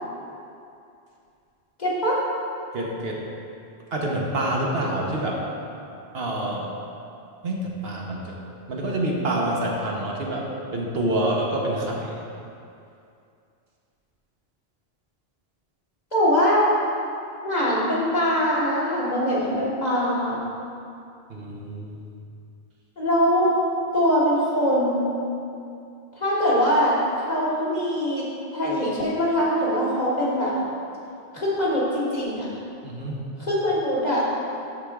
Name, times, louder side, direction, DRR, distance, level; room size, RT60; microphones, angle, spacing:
voice 1, 1.8-2.2 16.1-16.6 17.4-20.4 23.0-23.5 23.9-25.2 26.2-27.0 27.3-28.2 28.5-30.5 31.3-32.6 33.4-34.2, equal, 40° left, -8 dB, 1.7 m, -22 dB
voice 2, 2.7-3.2 3.9-5.4 6.1-6.7 7.4-8.4 8.7-12.2 21.3-22.1 32.8-33.2, right 1 dB, 70° right, -2 dB, 1.2 m, -27 dB
12.5 x 4.4 x 3.6 m, 2.6 s
omnidirectional pair, 1.1 m